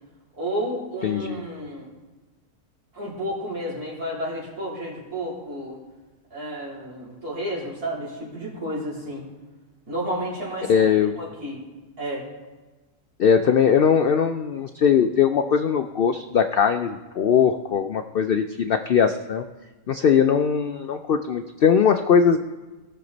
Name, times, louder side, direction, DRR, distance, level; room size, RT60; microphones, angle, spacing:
voice 1, 0.4-1.9 2.9-5.8 6.3-9.2 9.9-10.9 11.2-11.6 12.0-12.2, equal, 90° right, -6 dB, 4.1 m, -31 dB
voice 2, 1.0-1.4 10.7-11.2 13.2-19.4 19.9-22.4, left 7 dB, 85° left, 8 dB, 0.5 m, -20 dB
18.0 x 6.8 x 4.0 m, 1.2 s
omnidirectional pair, 1.6 m